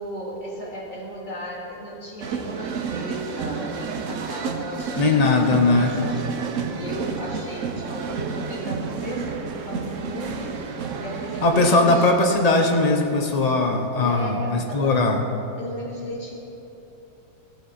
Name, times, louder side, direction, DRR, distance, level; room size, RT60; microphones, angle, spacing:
voice 1, 0.0-12.2 14.0-15.1 15.6-16.3, right 1 dB, 25° left, -5 dB, 2.4 m, -35 dB
sound 1, 2.2-12.1, right 5 dB, 60° right, 0.8 m, -30 dB
voice 2, 5.0-5.9 11.4-15.2, left 2 dB, 70° left, 2 dB, 0.3 m, -19 dB
15.5 x 8.0 x 4.1 m, 3.0 s
omnidirectional pair, 2.0 m